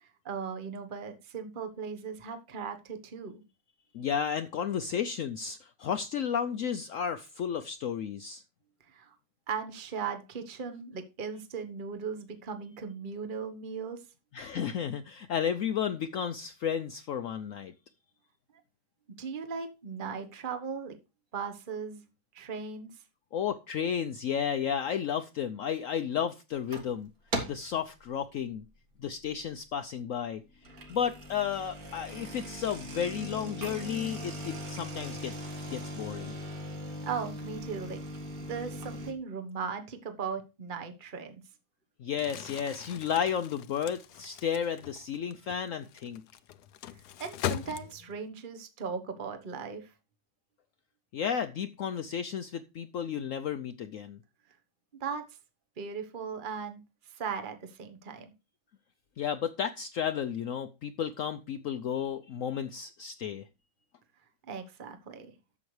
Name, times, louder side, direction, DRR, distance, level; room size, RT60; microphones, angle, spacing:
voice 1, 0.0-3.4 8.9-9.1 9.5-14.0 19.2-21.0 21.3-22.0 22.3-22.9 30.7-30.8 37.0-38.0 38.4-41.3 47.2-49.9 55.0-55.2 55.8-56.8 57.1-58.3 64.5-65.3, right 6 dB, 35° right, 1.2 m, -38 dB
voice 2, 3.9-8.4 14.3-17.7 23.3-27.1 27.5-28.6 29.0-30.4 30.9-35.3 35.7-36.3 42.0-46.2 51.1-54.2 59.2-63.4, left 8 dB, 65° left, 0.9 m, -33 dB
sound 1, 26.5-27.0 27.3-27.8 28.2-28.5 29.1-29.2 29.4-29.5 30.5-39.1, equal, 65° right, 2.4 m, -39 dB
Crumpling crinkling, 42.1-48.3, left 11 dB, 85° left, 1.2 m, -40 dB
12.5 x 7.8 x 3.2 m
omnidirectional pair, 1.7 m